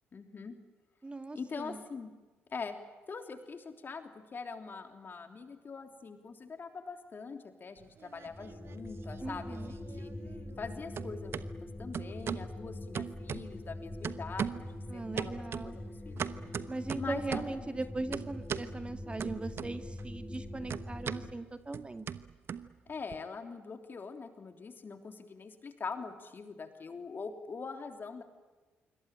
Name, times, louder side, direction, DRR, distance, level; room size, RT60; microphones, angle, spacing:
voice 1, 0.1-0.6 1.3-2.1 2.5-2.8 3.1-10.1 10.6-16.2 17.0-17.8 22.9-28.2, left 4 dB, 35° left, 6 dB, 3.2 m, -43 dB
voice 2, 1.0-1.8 9.2-9.7 14.9-15.8 16.7-22.1, right 2 dB, 20° right, 9 dB, 1.7 m, -39 dB
sound 1, 7.8-8.8 9.1-10.7 10.9-11.5 11.9-12.5 12.9-13.7 14.0-14.7 15.2-17.6 18.1-18.7 19.2-20.0 20.3-23.2, right 7 dB, 45° right, 1.1 m, -39 dB
sound 2, 8.3-21.3, left 1 dB, 10° left, 2.6 m, -43 dB
26.5 x 24.5 x 9.1 m, 1.2 s
figure-of-eight pair, 45°, 6 cm